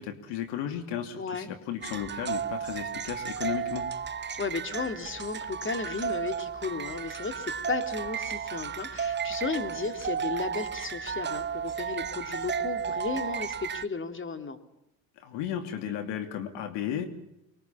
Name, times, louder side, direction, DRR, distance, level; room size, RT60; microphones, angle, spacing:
voice 1, 0.0-3.9 15.2-17.1, left 10 dB, 70° left, 7 dB, 2.7 m, -34 dB
voice 2, 1.2-1.5 4.4-14.6, left 4 dB, 25° left, 7 dB, 3.1 m, -34 dB
sound 1, 1.8-13.8, right 7 dB, 25° right, 1.0 m, -33 dB
24.0 x 22.5 x 7.2 m, 0.83 s
hypercardioid pair, 75°, 45 cm